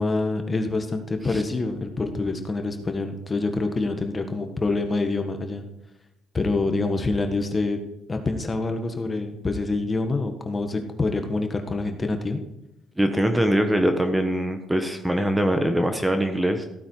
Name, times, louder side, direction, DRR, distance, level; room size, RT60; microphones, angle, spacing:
voice 1, 0.0-5.6 6.3-7.8 8.1-12.4, left 3 dB, 25° left, 6 dB, 1.5 m, -26 dB
voice 2, 13.0-16.6, right 1 dB, 5° right, 6 dB, 1.2 m, -22 dB
15.5 x 8.8 x 4.7 m, 0.89 s
cardioid pair, 100°, 0 cm